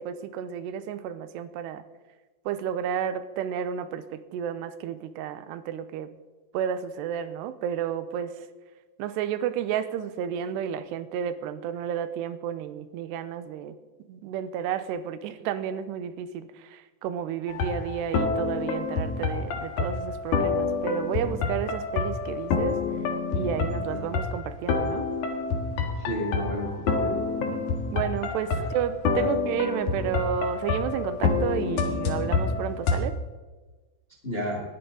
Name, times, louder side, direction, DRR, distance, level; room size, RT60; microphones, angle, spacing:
voice 1, 0.0-1.8 2.5-6.2 6.5-8.5 9.0-13.8 14.1-22.8 23.3-25.1 27.9-33.2, right 9 dB, 90° right, 12 dB, 2.9 m, -31 dB
sound 1, 17.5-33.0, left 4 dB, 60° left, 2.6 m, -28 dB
voice 2, 26.0-27.6 29.1-29.3 34.2-34.6, equal, 25° left, -1 dB, 1.3 m, -32 dB
19.0 x 11.5 x 3.9 m, 1.3 s
omnidirectional pair, 4.8 m